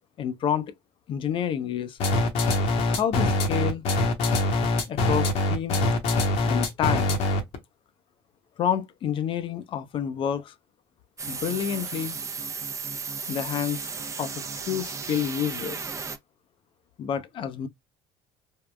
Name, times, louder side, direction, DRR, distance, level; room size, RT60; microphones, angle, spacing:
voice 1, 0.2-0.7 1.1-2.0 2.9-3.8 4.9-5.9 6.5-7.2 8.6-10.5 11.3-12.2 13.3-13.9 14.2-15.8 17.0-17.7, left 9 dB, 45° left, 0.6 m, -29 dB
sound 1, 2.0-7.5, left 2 dB, 65° left, 1.0 m, -23 dB
sound 2, 11.2-16.2, right 5 dB, 25° right, 0.5 m, -34 dB
3.6 x 2.1 x 2.2 m
supercardioid pair, 85°, 12 cm